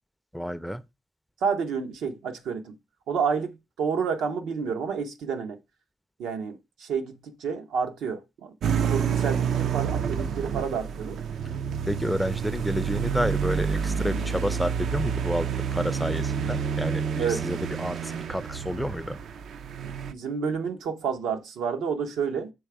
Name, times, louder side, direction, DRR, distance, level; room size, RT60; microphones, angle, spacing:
voice 1, 0.3-0.8 11.9-19.2, equal, ahead, 0.4 m, -30 dB
voice 2, 1.4-2.7 3.1-5.6 6.2-8.5 8.8-11.2 17.2-17.5 20.1-22.5, right 6 dB, 80° right, 0.8 m, -30 dB
sound 1, 8.6-20.1, right 7 dB, 65° right, 0.4 m, -29 dB
6.3 x 3.4 x 4.7 m
cardioid pair, 90°, 0 cm